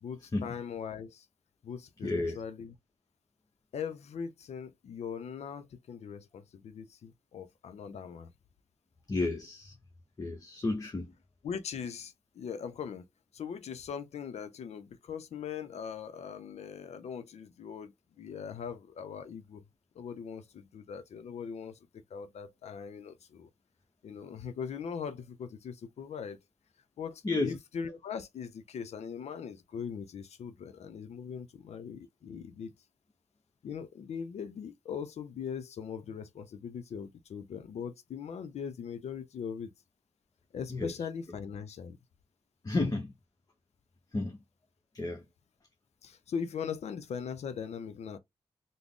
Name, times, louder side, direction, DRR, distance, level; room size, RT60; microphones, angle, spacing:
voice 1, 0.0-1.3 1.6-2.8 3.7-8.3 11.4-13.0 13.3-19.6 20.0-21.8 22.1-23.5 24.0-26.4 27.0-32.7 33.6-39.7 40.5-42.0 46.0-48.2, left 7 dB, 75° left, 0.5 m, -40 dB
voice 2, 2.0-2.4 9.1-9.7 10.2-11.1 27.2-27.6 40.7-40.9 42.6-43.1 44.1-44.4 44.9-45.2, left 2 dB, 35° left, 0.8 m, -31 dB
3.6 x 2.0 x 3.5 m
cardioid pair, 45°, 11 cm